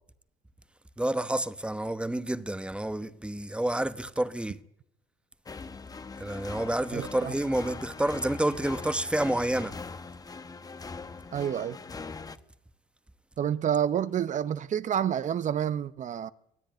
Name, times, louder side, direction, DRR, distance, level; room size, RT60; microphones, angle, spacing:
voice 1, 1.0-4.6 6.2-9.8, right 1 dB, 5° right, 1.0 m, -29 dB
sound 1, 5.5-12.4, left 4 dB, 20° left, 1.0 m, -41 dB
voice 2, 6.9-7.3 11.3-11.8 13.4-16.3, right 9 dB, 45° right, 0.8 m, -29 dB
24.5 x 17.0 x 9.1 m
cardioid pair, 110°, 17 cm